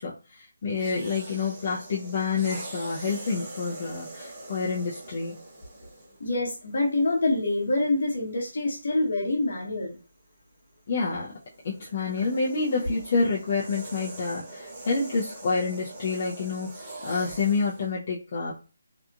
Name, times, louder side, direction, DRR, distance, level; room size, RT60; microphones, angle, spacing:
voice 1, 0.0-5.3 10.9-11.3 11.6-18.5, left 4 dB, 40° left, -6 dB, 0.5 m, -28 dB
sound 1, 0.7-6.2 7.0-7.3 11.2-17.9, right 2 dB, 20° right, 0.7 m, -43 dB
voice 2, 6.2-10.0, left 2 dB, 60° left, -1 dB, 1.0 m, -26 dB
2.8 x 2.3 x 2.3 m, 0.35 s
figure-of-eight pair, 165°, 0 cm